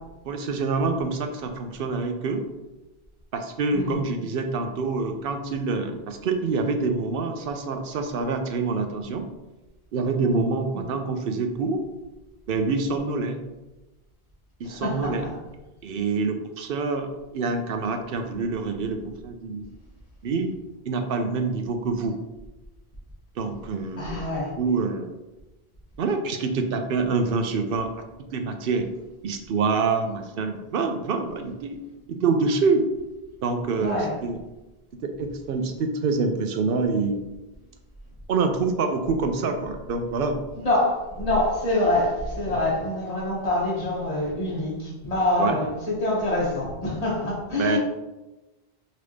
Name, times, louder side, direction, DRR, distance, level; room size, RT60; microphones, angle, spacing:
voice 1, 0.3-2.4 3.3-9.2 9.9-11.8 12.5-13.4 14.6-15.2 15.8-19.6 20.2-20.5 20.9-22.2 23.4-24.3 24.6-25.1 26.0-27.9 28.3-28.9 29.2-31.8 32.1-32.8 33.4-34.4 35.0-37.2 38.3-40.4 42.5-42.6 45.4-45.6 47.6-47.8, right 4 dB, 65° right, 6 dB, 0.7 m, -26 dB
voice 2, 14.6-15.3 24.0-24.5 33.8-34.2 40.6-47.8, left 1 dB, 35° left, -6 dB, 1.6 m, -25 dB
5.2 x 2.8 x 3.3 m, 1.1 s
omnidirectional pair, 1.1 m